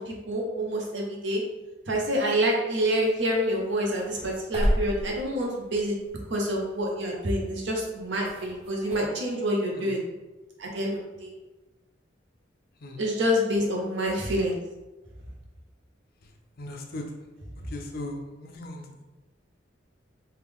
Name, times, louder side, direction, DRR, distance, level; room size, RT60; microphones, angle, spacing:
voice 1, 0.0-1.4 1.9-6.0 6.3-10.0 10.6-11.3 13.0-14.6, equal, 65° right, -1 dB, 0.8 m, -27 dB
sound 1, 2.7-9.0, equal, 30° right, 0.6 m, -34 dB
voice 2, 16.6-17.0 17.7-19.0, left 2 dB, 50° left, 2 dB, 0.5 m, -38 dB
3.3 x 2.4 x 3.5 m, 1.1 s
head